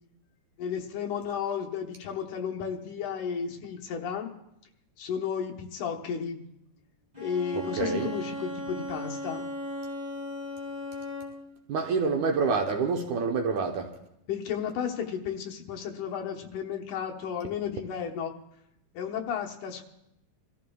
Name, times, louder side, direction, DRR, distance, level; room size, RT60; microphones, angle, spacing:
voice 1, 0.6-4.3 5.0-6.4 7.2-9.5 14.3-18.3 18.9-19.9, left 7 dB, 70° left, 1 dB, 2.5 m, -33 dB
Bowed string instrument, 7.1-11.6, equal, 10° right, 7.3 m, -37 dB
voice 2, 7.5-8.1 11.7-14.0, right 4 dB, 70° right, 2 dB, 2.1 m, -27 dB
28.0 x 14.0 x 2.3 m, 0.81 s
omnidirectional pair, 4.0 m